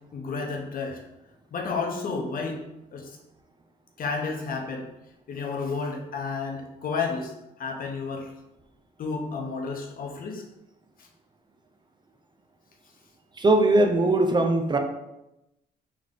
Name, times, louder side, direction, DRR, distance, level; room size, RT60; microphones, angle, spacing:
voice 1, 0.1-1.0 1.5-2.6 2.9-3.1 4.0-4.9 5.3-7.3 7.6-8.3 9.0-10.4, left 4 dB, 55° left, 1 dB, 0.9 m, -31 dB
voice 2, 13.4-14.8, right 2 dB, 25° right, 4 dB, 0.4 m, -20 dB
3.7 x 3.1 x 3.7 m, 0.91 s
cardioid pair, 110°, 17 cm